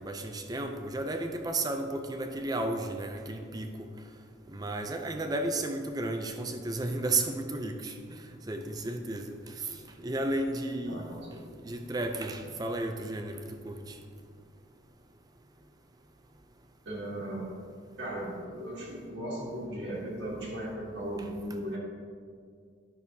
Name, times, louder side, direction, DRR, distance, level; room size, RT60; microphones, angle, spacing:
voice 1, 0.0-3.7 4.5-7.9 8.5-9.7 10.0-11.2 11.6-13.4 13.6-13.9, right 2 dB, 20° right, 5 dB, 0.4 m, -33 dB
voice 2, 10.9-11.4 16.8-17.5 18.0-21.8, right 1 dB, 65° right, -7 dB, 1.4 m, -37 dB
10.5 x 6.3 x 2.7 m, 2.2 s
head